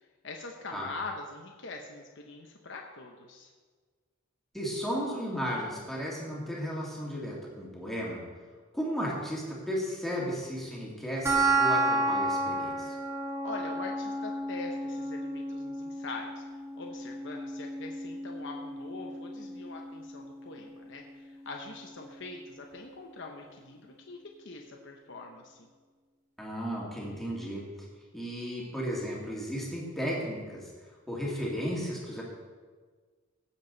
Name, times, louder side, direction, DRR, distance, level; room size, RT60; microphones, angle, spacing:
voice 1, 0.2-3.5 13.4-16.4 16.8-25.7, left 3 dB, 60° left, 1 dB, 1.0 m, -43 dB
voice 2, 4.5-8.2 8.7-13.0 26.4-27.7 28.1-30.7 31.1-32.2, equal, ahead, -5 dB, 2.3 m, -34 dB
sound 1, 11.2-22.2, right 2 dB, 15° right, 1.7 m, -32 dB
16.5 x 7.3 x 4.0 m, 1.5 s
head